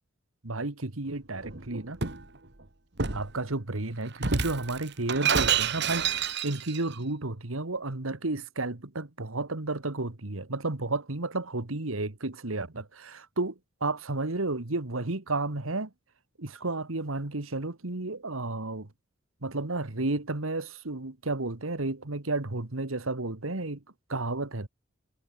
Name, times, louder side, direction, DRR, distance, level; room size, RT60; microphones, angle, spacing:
voice 1, 0.4-2.0 3.1-6.2 6.4-15.9 16.4-18.9 19.4-23.8 24.1-24.7, right 2 dB, 90° right, 1.8 m, -32 dB
Shatter, 1.4-2.3 3.0-3.3 4.2-6.8, right 6 dB, 55° right, 2.0 m, -28 dB
head